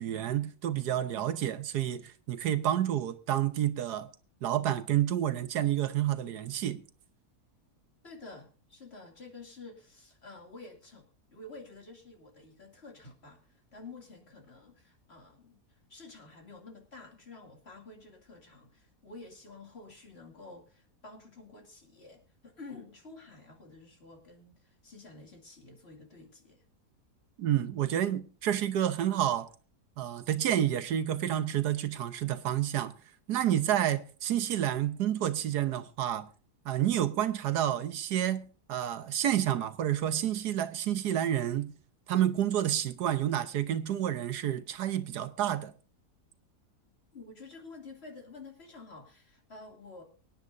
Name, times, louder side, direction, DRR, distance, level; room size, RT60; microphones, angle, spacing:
voice 1, 0.0-4.1 4.4-6.8 27.4-29.5 30.0-32.9 33.3-36.3 36.6-41.7 42.1-45.7, right 11 dB, 85° right, 1.5 m, -29 dB
voice 2, 8.0-26.6 47.1-50.0, left 3 dB, 40° left, 2.8 m, -50 dB
24.0 x 9.7 x 2.6 m
omnidirectional pair, 1.7 m